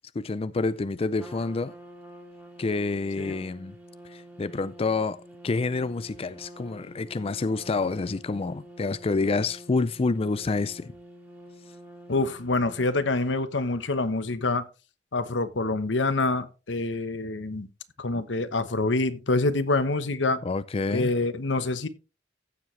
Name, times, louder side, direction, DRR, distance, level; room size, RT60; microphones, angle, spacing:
voice 1, 0.1-1.7 2.6-3.8 4.0-10.9 20.4-21.1, left 3 dB, 30° left, 0.4 m, -28 dB
Trumpet, 1.2-13.3, right 1 dB, 10° right, 2.8 m, -47 dB
voice 2, 12.1-14.6 15.1-17.7 18.0-20.4 20.9-21.9, left 2 dB, 85° left, 1.1 m, -26 dB
15.0 x 7.6 x 3.2 m
head